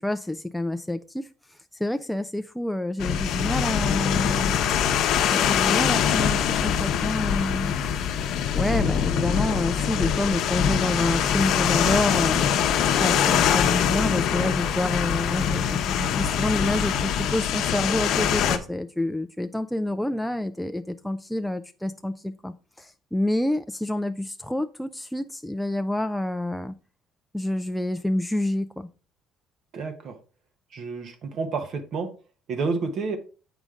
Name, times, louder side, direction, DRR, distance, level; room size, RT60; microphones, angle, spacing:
voice 1, 0.0-4.6 5.3-8.1 8.6-12.6 13.0-26.7 27.3-28.9, left 1 dB, 5° left, 8 dB, 0.3 m, -28 dB
sound 1, 3.0-18.6, left 8 dB, 70° left, 0.8 m, -23 dB
voice 2, 29.7-30.1 30.7-32.1 32.5-33.2, right 4 dB, 55° right, 6 dB, 0.9 m, -29 dB
7.7 x 5.1 x 3.6 m, 0.37 s
cardioid pair, 130°, 0 cm